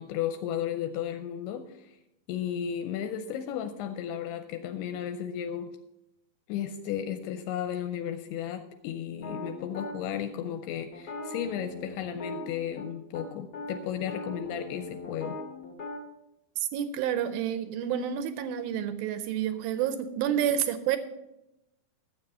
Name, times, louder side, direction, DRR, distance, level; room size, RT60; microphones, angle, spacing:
voice 1, 0.0-2.0 2.3-5.8 6.5-15.4 20.3-20.6, left 9 dB, 80° left, 8 dB, 2.5 m, -34 dB
sound 1, 9.2-10.0 10.9-12.9 13.1-13.3 13.5-16.0, left 2 dB, 55° left, 1.4 m, -39 dB
voice 2, 16.6-21.0, right 10 dB, 80° right, 11 dB, 2.1 m, -29 dB
12.0 x 7.6 x 5.4 m, 0.89 s
omnidirectional pair, 4.9 m